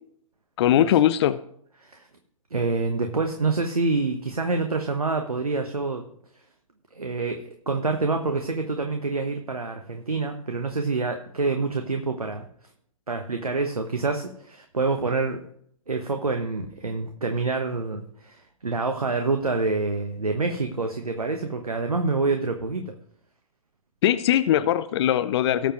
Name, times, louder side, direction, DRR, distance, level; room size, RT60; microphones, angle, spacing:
voice 1, 0.6-1.4 24.0-25.7, left 11 dB, 50° left, 14 dB, 0.6 m, -20 dB
voice 2, 2.5-6.0 6.9-12.5 13.1-15.4 15.9-22.9, right 3 dB, 85° right, 5 dB, 1.2 m, -27 dB
18.5 x 7.1 x 3.1 m, 0.66 s
figure-of-eight pair, 120°, 18 cm